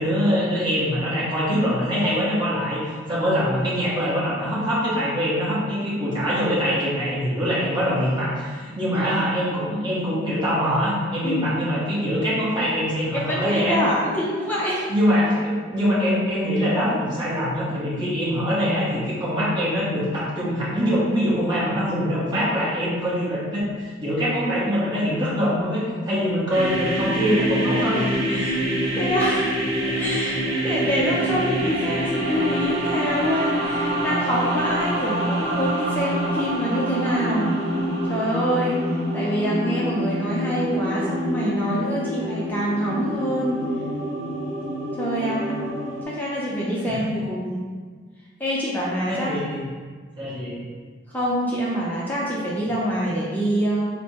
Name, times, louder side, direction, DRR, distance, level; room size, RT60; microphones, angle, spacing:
voice 1, 0.0-2.8 3.1-13.8 14.9-28.2 46.9-47.0 49.1-49.7 50.2-50.6, equal, 20° right, -9 dB, 1.0 m, -23 dB
voice 2, 13.1-14.9 28.3-28.6 29.0-29.5 29.9-37.5 38.1-38.8 39.1-43.6 45.0-45.6 46.1-47.6 48.4-49.3 51.1-53.9, equal, 10° left, -7 dB, 0.5 m, -25 dB
sound 1, 26.5-46.0, right 1 dB, 75° right, 0.8 m, -26 dB
4.2 x 2.1 x 4.4 m, 1.5 s
head